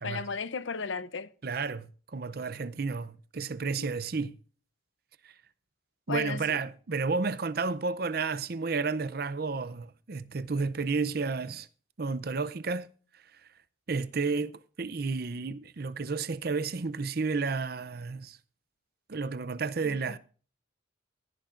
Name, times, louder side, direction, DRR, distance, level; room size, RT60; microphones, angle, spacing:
voice 1, 0.0-1.3 3.8-3.9 6.1-6.6 19.8-20.1, left 5 dB, 80° left, 0.7 m, -35 dB
voice 2, 1.4-4.4 5.2-5.3 6.1-11.7 12.0-12.9 13.9-14.5 14.8-18.4 19.1-20.2, right 4 dB, 50° right, 0.6 m, -31 dB
16.5 x 14.5 x 2.5 m
head